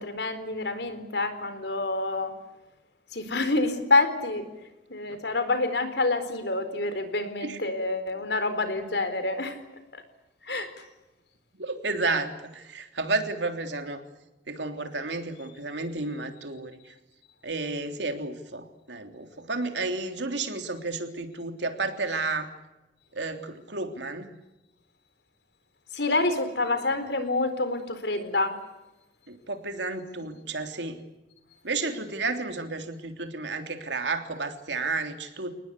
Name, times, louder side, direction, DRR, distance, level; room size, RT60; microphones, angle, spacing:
voice 1, 0.0-2.3 3.1-4.5 4.9-9.6 9.9-10.0 10.4-10.7 25.9-28.5, left 2 dB, 65° left, 10 dB, 4.3 m, -27 dB
voice 2, 11.5-14.0 14.5-16.9 17.4-22.5 23.1-24.3 29.3-31.1 31.6-35.5, right 3 dB, 75° right, 6 dB, 3.3 m, -32 dB
29.5 x 19.5 x 8.4 m, 1.0 s
head